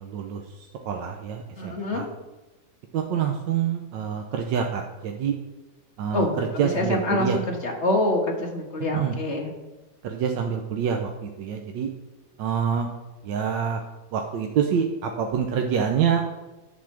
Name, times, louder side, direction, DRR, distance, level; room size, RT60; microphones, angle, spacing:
voice 1, 0.0-2.1 2.9-5.3 6.0-7.4 8.9-9.2 10.0-11.9 12.4-12.9 13.2-13.8 14.1-16.2, right 7 dB, 75° right, 3 dB, 1.4 m, -26 dB
voice 2, 1.6-2.1 6.1-6.4 6.7-9.5, left 2 dB, 40° left, 1 dB, 1.6 m, -25 dB
11.0 x 4.2 x 7.2 m, 1.1 s
omnidirectional pair, 2.0 m